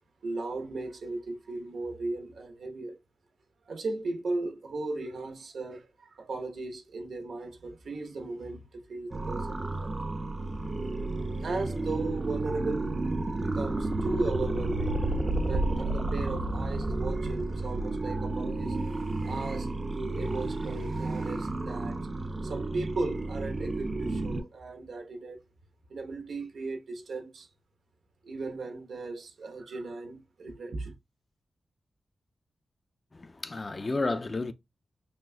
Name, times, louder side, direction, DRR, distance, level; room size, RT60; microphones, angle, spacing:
voice 1, 0.2-3.0 3.7-9.9 10.2-13.0 13.4-15.0 15.5-25.4 25.9-27.5 28.2-30.9, right 3 dB, 85° right, 1.0 m, -37 dB
sound 1, 9.1-24.4, right 2 dB, 35° right, 0.4 m, -31 dB
voice 2, 33.1-34.5, left 3 dB, 35° left, 0.4 m, -31 dB
6.2 x 2.5 x 2.2 m
wide cardioid pair, 100°, 0 cm